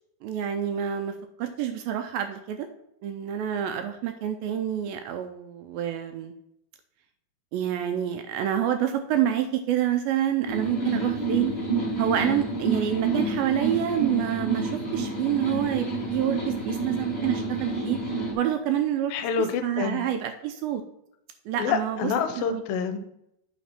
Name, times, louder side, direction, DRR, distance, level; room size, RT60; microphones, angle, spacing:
voice 1, 0.2-2.7 3.0-6.3 7.5-11.5 12.0-18.0 18.3-20.8 21.5-22.1 22.4-22.6, right 10 dB, 80° right, 8 dB, 2.2 m, -28 dB
sound 1, 10.5-18.3, right 3 dB, 15° left, 1.8 m, -29 dB
voice 2, 19.1-20.0 21.6-23.0, left 6 dB, 75° left, 8 dB, 2.2 m, -27 dB
8.7 x 4.1 x 5.8 m, 0.78 s
omnidirectional pair, 4.5 m